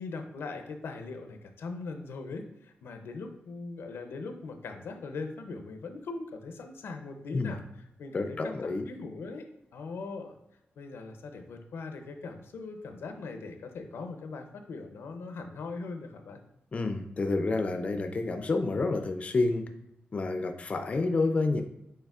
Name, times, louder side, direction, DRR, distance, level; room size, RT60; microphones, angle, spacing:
voice 1, 0.0-9.5 9.7-10.4 10.8-16.4, left 3 dB, 85° left, 6 dB, 0.5 m, -40 dB
voice 2, 8.1-8.9 16.7-19.6 20.1-21.6, left 3 dB, 35° left, 6 dB, 0.4 m, -29 dB
6.6 x 3.2 x 2.4 m, 0.84 s
wide cardioid pair, 130°, 4 cm